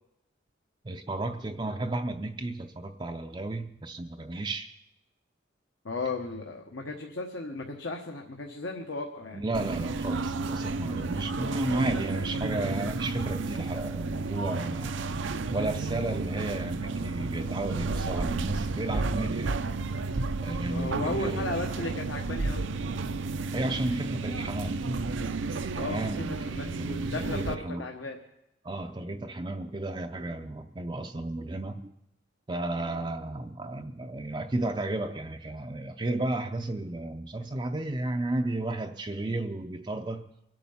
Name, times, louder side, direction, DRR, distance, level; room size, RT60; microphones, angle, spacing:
voice 1, 0.8-4.7 9.3-14.9 15.5-19.5 20.4-21.5 23.5-24.9 25.8-27.9 28.6-31.9 32.5-40.3, right 2 dB, 25° right, 4 dB, 0.5 m, -33 dB
voice 2, 5.8-9.4 20.7-22.7 25.8-26.0 26.3-28.2, left 3 dB, 75° left, 1 dB, 1.2 m, -35 dB
sound 1, 9.5-27.6, right 3 dB, 70° right, 0.6 m, -32 dB
23.5 x 8.5 x 5.7 m, 0.87 s
head